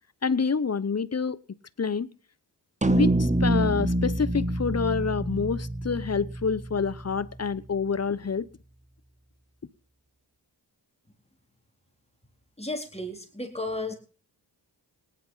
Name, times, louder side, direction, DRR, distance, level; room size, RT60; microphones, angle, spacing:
voice 1, 0.2-1.4 1.8-2.1 2.9-8.5, left 5 dB, 35° left, 1.0 m, -27 dB
sound 1, 2.8-7.3, right 1 dB, 15° right, 1.4 m, -26 dB
voice 2, 12.6-13.9, left 2 dB, 15° left, 4.1 m, -33 dB
18.0 x 10.5 x 5.6 m
cardioid pair, 55°, 43 cm